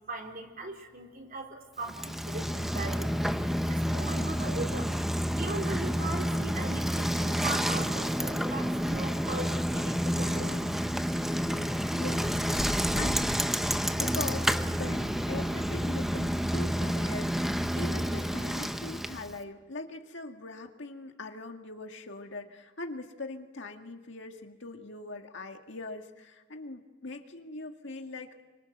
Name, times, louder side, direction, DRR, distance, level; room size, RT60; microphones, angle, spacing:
voice 1, 0.1-3.1 3.7-4.9 5.4-10.6, right 2 dB, 45° right, 2 dB, 3.8 m, -39 dB
Bicycle, 1.8-19.4, equal, ahead, 0.8 m, -29 dB
voice 2, 11.9-12.3 12.9-13.4 14.0-28.4, left 3 dB, 65° left, 4 dB, 2.0 m, -41 dB
27.5 x 25.0 x 8.0 m, 1.3 s
head